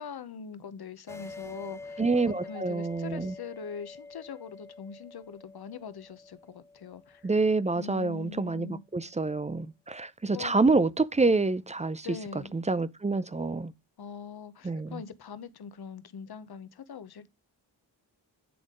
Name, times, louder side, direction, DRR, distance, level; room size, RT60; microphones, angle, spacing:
voice 1, 0.0-7.3 7.7-8.8 10.3-10.6 12.0-12.5 14.0-17.3, left 7 dB, 50° left, 0.9 m, -42 dB
sound 1, 1.1-8.2, left 3 dB, 5° left, 1.0 m, -46 dB
voice 2, 2.0-3.3 7.2-12.1 12.5-13.7 14.6-15.0, right 3 dB, 15° right, 0.5 m, -27 dB
8.6 x 3.5 x 3.7 m
supercardioid pair, 40°, 48 cm